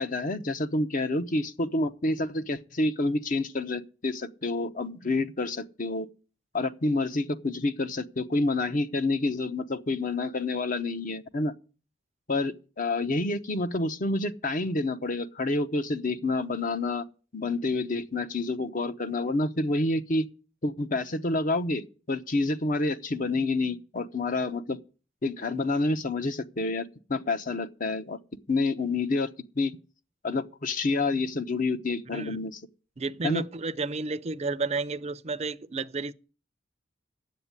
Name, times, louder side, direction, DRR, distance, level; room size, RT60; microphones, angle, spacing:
voice 1, 0.0-6.1 6.5-11.5 12.3-17.0 17.3-20.3 20.6-24.8 25.2-28.2 28.5-29.3 29.6-29.8 30.2-32.6 33.2-33.4, left 2 dB, 50° left, 0.9 m, -28 dB
voice 2, 33.0-36.1, right 3 dB, 35° right, 0.6 m, -31 dB
9.8 x 8.1 x 9.7 m
head